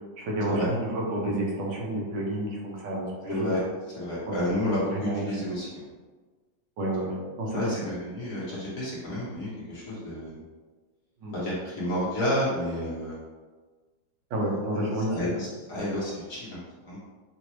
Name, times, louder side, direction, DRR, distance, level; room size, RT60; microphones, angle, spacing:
voice 1, 0.2-3.5 4.3-4.4 4.9-5.2 6.8-7.7 11.2-11.4 14.3-15.4, right 1 dB, 65° right, -3 dB, 1.6 m, -30 dB
voice 2, 3.3-3.6 4.0-5.8 7.5-10.4 11.3-13.1 15.1-17.0, left 1 dB, 50° left, -8 dB, 1.4 m, -30 dB
6.2 x 2.5 x 3.1 m, 1.4 s
omnidirectional pair, 2.2 m